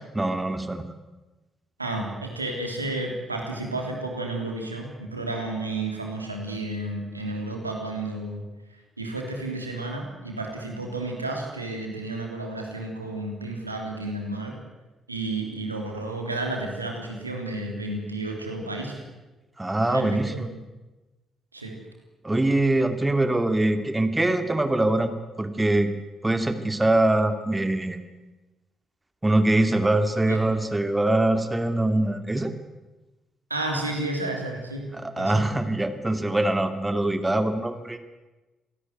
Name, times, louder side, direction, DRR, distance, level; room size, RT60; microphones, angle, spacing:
voice 1, 0.1-0.9 19.6-20.5 22.2-25.9 26.2-28.0 29.2-32.5 34.9-38.0, right 2 dB, 15° right, 8 dB, 2.7 m, -23 dB
voice 2, 1.8-8.4 9.0-14.6 15.1-19.0 19.9-20.4 21.5-21.7 30.3-30.4 33.5-35.4, right 2 dB, 85° right, 2 dB, 3.3 m, -32 dB
26.5 x 18.5 x 9.4 m, 1.1 s
figure-of-eight pair, 45°, 0 cm